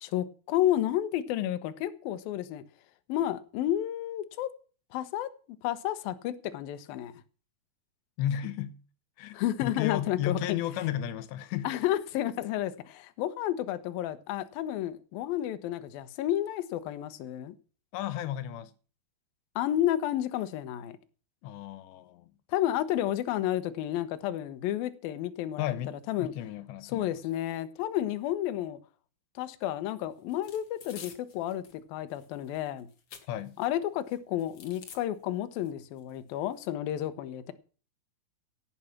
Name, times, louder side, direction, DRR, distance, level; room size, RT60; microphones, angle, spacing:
voice 1, 0.0-2.6 3.1-4.5 4.9-5.3 5.6-7.1 9.3-10.4 11.6-17.6 19.6-21.0 22.5-25.7 26.1-26.3 26.9-28.8 29.4-32.9 33.6-37.5, left 12 dB, 70° left, 2.7 m, -31 dB
voice 2, 8.2-8.8 9.2-11.7 17.9-18.7 21.4-22.3 25.6-27.1 33.3-33.6, left 11 dB, 90° left, 3.3 m, -34 dB
sound 1, 30.3-31.8 32.1-33.7 34.1-35.0 35.7-35.8 36.0-36.6, left 6 dB, 45° left, 2.2 m, -50 dB
16.5 x 8.7 x 5.9 m
omnidirectional pair, 4.8 m